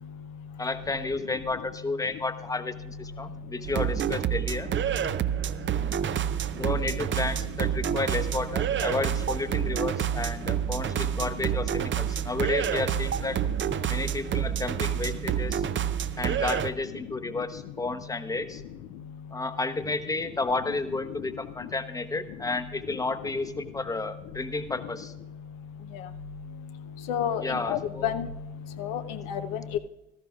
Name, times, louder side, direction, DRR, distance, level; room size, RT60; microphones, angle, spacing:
voice 1, 0.6-4.7 6.5-13.4 13.9-15.6 16.2-18.6 19.3-25.1 27.4-28.1, left 3 dB, 10° left, 9 dB, 0.9 m, -32 dB
sound 1, 3.6-16.7, right 10 dB, 35° right, 0.6 m, -28 dB
voice 2, 27.1-28.3 28.8-29.0 29.3-29.8, left 9 dB, 70° left, 8 dB, 0.7 m, -29 dB
17.5 x 13.5 x 2.4 m, 0.92 s
hypercardioid pair, 55°, 36 cm